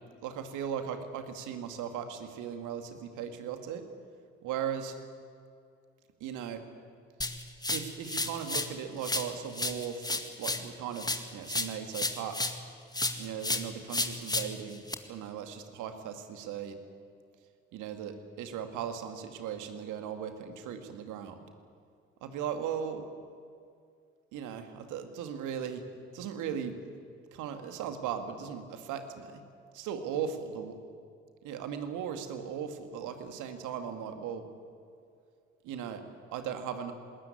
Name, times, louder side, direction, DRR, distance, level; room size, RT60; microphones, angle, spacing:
voice 1, 0.2-3.9 4.4-5.0 6.2-6.6 7.7-12.4 13.2-14.8 15.1-16.8 17.7-21.4 22.2-23.1 24.3-25.8 26.1-26.8 27.3-29.4 29.7-30.7 31.4-34.4 35.6-36.0 36.3-36.9, right 8 dB, 65° right, 7 dB, 2.3 m, -37 dB
sound 1, 7.2-8.8 9.0-12.7 12.9-14.9, left 2 dB, 10° left, 2.0 m, -33 dB
20.5 x 19.0 x 9.9 m, 2.3 s
figure-of-eight pair, 50°, 33 cm